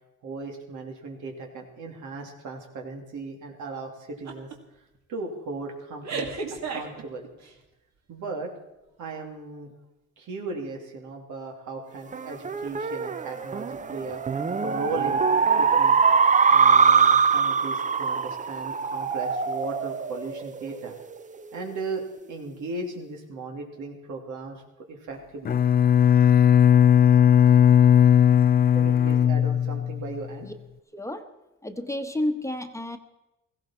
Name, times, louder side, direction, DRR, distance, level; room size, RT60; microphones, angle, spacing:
voice 1, 0.2-4.5 5.1-7.3 8.1-8.5 9.0-9.7 10.2-14.2 14.6-15.2 15.5-16.0 16.5-21.0 21.5-22.0 22.3-24.6 24.9-25.6 28.7-30.5, right 3 dB, 85° right, 1 dB, 2.7 m, -36 dB
sound 1, 4.3-4.6 5.0-5.2 6.0-7.5, right 4 dB, 65° right, 2.2 m, -33 dB
sound 2, 12.1-21.0, right 6 dB, 25° right, 0.6 m, -22 dB
Bowed string instrument, 25.4-30.2, left 9 dB, 30° left, 0.4 m, -17 dB
voice 2, 30.9-31.3 31.6-33.0, left 1 dB, 10° left, 6 dB, 1.1 m, -30 dB
17.0 x 15.5 x 4.5 m, 0.94 s
cardioid pair, 90°, 30 cm